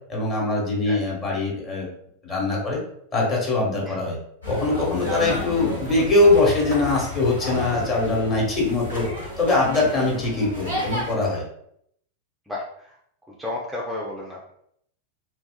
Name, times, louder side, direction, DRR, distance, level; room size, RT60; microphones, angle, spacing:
voice 1, 0.1-1.9 2.2-2.8 3.1-4.2 4.5-9.1 9.4-11.4, left 2 dB, 25° left, -3 dB, 1.0 m, -22 dB
sound 1, 4.4-11.1, left 1 dB, 85° left, 1.5 m, -32 dB
voice 2, 12.5-12.9 13.3-14.5, left 2 dB, 5° right, -4 dB, 0.5 m, -33 dB
2.8 x 2.3 x 2.2 m, 0.70 s
figure-of-eight pair, 90°, 0 cm